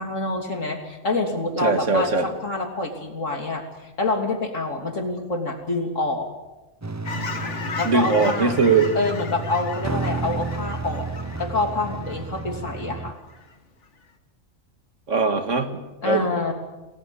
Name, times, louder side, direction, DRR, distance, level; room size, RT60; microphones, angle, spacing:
voice 1, 0.0-6.3 7.8-8.5 9.0-11.1 11.4-13.2 16.0-16.5, left 2 dB, 80° left, 3 dB, 3.5 m, -27 dB
voice 2, 1.6-2.3 7.8-8.9 15.1-16.2, right 4 dB, 75° right, 7 dB, 2.3 m, -21 dB
sound 1, 6.8-13.1, right 3 dB, 20° right, 0.6 m, -32 dB
Fowl / Chirp tweet, 7.0-12.9 13.3-13.5, left 4 dB, 65° left, 2.0 m, -35 dB
28.5 x 18.5 x 7.1 m, 1.1 s
omnidirectional pair, 1.3 m